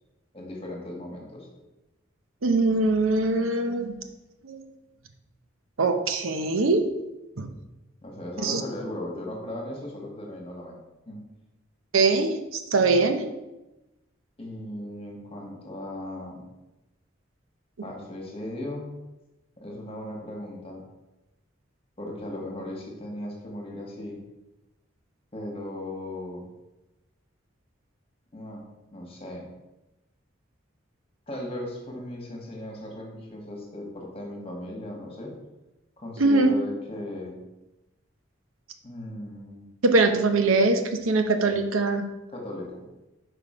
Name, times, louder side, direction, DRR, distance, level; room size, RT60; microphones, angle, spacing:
voice 1, 0.3-1.5 8.0-10.8 11.1-11.2 14.4-16.4 17.8-18.9 19.6-20.8 22.0-24.2 25.3-26.5 28.3-28.6 28.9-29.5 31.3-35.3 36.0-37.4 38.8-39.7 42.3-42.9, left 1 dB, 30° left, 0 dB, 1.4 m, -37 dB
voice 2, 2.4-3.9 4.4-4.6 5.8-6.8 7.4-7.5 8.4-8.6 11.9-13.2 36.2-36.6 39.8-42.0, right 3 dB, 85° right, 6 dB, 0.7 m, -22 dB
5.9 x 5.0 x 4.9 m, 1.0 s
head